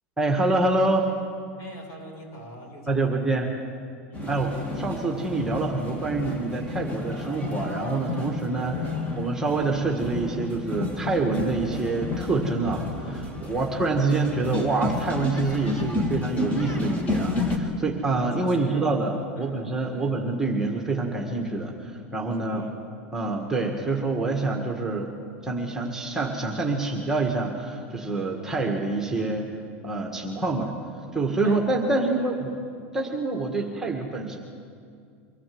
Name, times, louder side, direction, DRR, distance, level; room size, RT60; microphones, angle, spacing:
voice 1, 0.2-1.1 2.9-3.5 4.3-8.7 9.2-22.6 23.1-25.1 25.4-29.5 29.8-30.7 31.1-32.5 32.9-34.4, right 3 dB, 5° right, 0 dB, 1.8 m, -26 dB
voice 2, 1.6-3.4 4.1-4.5 8.7-9.0 13.6-14.3 18.4-18.8 19.3-20.1 22.3-22.7 31.4-32.3 33.6-33.7, equal, 50° left, 0 dB, 6.7 m, -45 dB
sound 1, 4.1-17.6, left 2 dB, 20° left, 2.7 m, -31 dB
24.5 x 16.0 x 7.9 m, 2.3 s
supercardioid pair, 135°, 7 cm